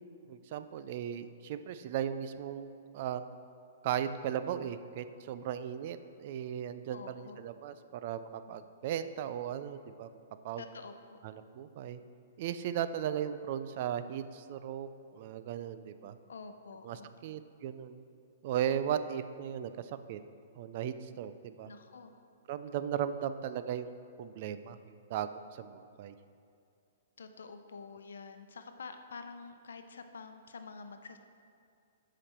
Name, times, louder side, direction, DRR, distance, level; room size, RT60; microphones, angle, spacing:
voice 1, 0.3-3.2 3.8-10.1 10.4-10.6 11.2-12.0 12.4-16.2 16.8-18.0 18.4-20.2 20.6-21.7 22.5-23.9 24.2-25.3 25.6-26.1, right 9 dB, 50° right, 12 dB, 0.4 m, -37 dB
voice 2, 6.9-7.4 10.6-11.2 16.3-17.3 21.6-22.2 27.2-31.2, left 4 dB, 90° left, 8 dB, 0.7 m, -48 dB
13.0 x 5.1 x 4.4 m, 2.4 s
hypercardioid pair, 150°, 0 cm